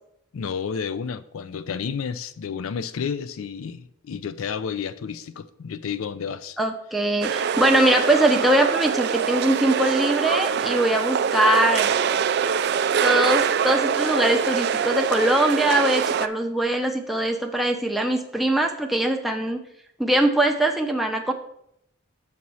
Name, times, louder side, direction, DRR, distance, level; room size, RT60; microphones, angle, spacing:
voice 1, 0.3-6.6, left 6 dB, 80° left, 0.4 m, -31 dB
voice 2, 6.6-12.0 13.0-19.6 20.0-21.3, right 1 dB, ahead, 0.7 m, -22 dB
sound 1, 7.2-16.3, right 7 dB, 50° right, 0.3 m, -24 dB
7.0 x 4.1 x 6.2 m
head